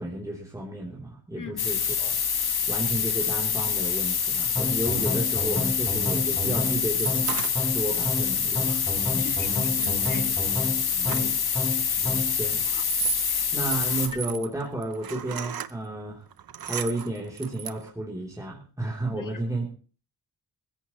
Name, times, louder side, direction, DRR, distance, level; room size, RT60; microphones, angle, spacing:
voice 1, 0.0-2.2 2.7-7.3 7.7-9.4 10.9-11.1 12.0-12.6 13.5-16.2 16.7-19.7, right 1 dB, 10° right, 3.2 m, -32 dB
sound 1, 1.6-14.1, left 7 dB, 80° left, 1.8 m, -26 dB
sound 2, 4.6-12.4, left 1 dB, 5° left, 1.3 m, -31 dB
sound 3, 7.0-8.1 9.4-11.5 12.4-15.7 16.3-17.9, right 9 dB, 70° right, 0.9 m, -35 dB
voice 2, 9.2-10.4 11.1-11.3 13.3-13.4 19.1-19.3, left 6 dB, 55° left, 2.0 m, -39 dB
19.0 x 15.5 x 3.1 m
wide cardioid pair, 85°, 37 cm